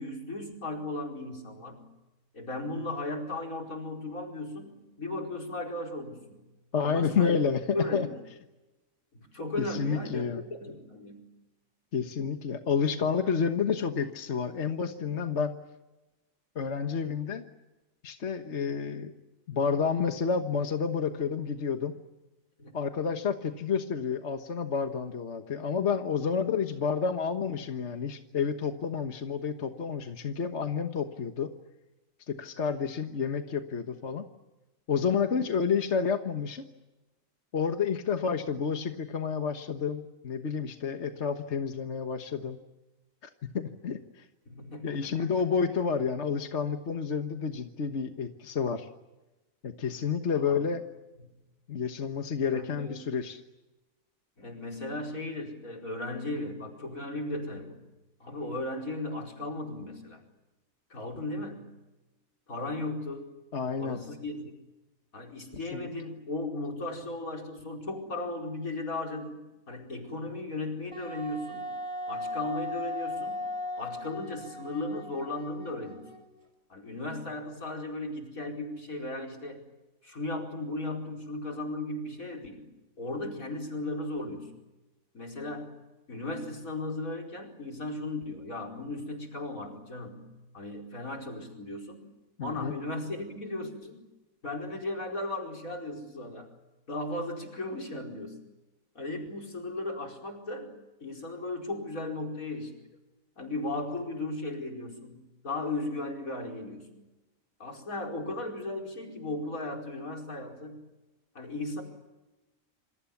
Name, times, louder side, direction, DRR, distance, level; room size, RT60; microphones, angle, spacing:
voice 1, 0.0-1.9 2.3-6.4 6.8-7.4 7.7-8.2 9.1-11.3 15.0-15.2 22.6-22.7 44.5-45.3 50.4-50.6 51.2-51.3 52.5-53.0 54.4-57.8 58.2-60.2 60.9-61.7 62.5-63.3 63.8-64.4 65.1-71.7 72.1-73.5 73.8-76.1 76.7-79.7 80.0-82.7 83.0-84.6 85.1-85.8 86.1-92.1 92.4-94.0 94.4-96.5 96.9-98.4 99.0-102.8 103.4-107.1 107.6-110.8 111.4-111.8, left 2 dB, 85° left, 2 dB, 5.3 m, -36 dB
voice 2, 6.7-7.6 7.9-8.1 9.6-10.4 11.9-15.6 16.5-17.4 18.0-19.1 19.5-22.0 22.7-31.5 32.3-34.2 34.9-36.7 37.5-42.6 43.5-44.2 44.8-48.9 49.6-50.8 51.7-53.4 63.5-64.0 65.7-65.9 92.4-92.7, left 6 dB, 55° left, 7 dB, 1.6 m, -30 dB
Wind instrument woodwind instrument, 70.9-76.4, left 1 dB, 20° right, 5.1 m, -37 dB
27.5 x 27.0 x 7.2 m, 1.1 s
omnidirectional pair, 1.4 m